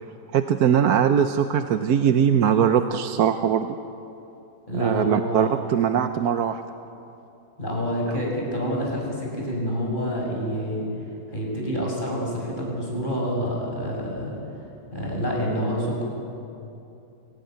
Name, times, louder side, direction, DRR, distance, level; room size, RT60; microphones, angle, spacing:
voice 1, 0.3-3.7 4.7-6.6, right 8 dB, 75° right, 8 dB, 1.3 m, -21 dB
voice 2, 4.7-5.6 7.6-10.9 11.3-14.4 14.9-16.0, equal, 30° left, -2 dB, 6.7 m, -27 dB
26.0 x 18.5 x 9.4 m, 2.8 s
omnidirectional pair, 1.7 m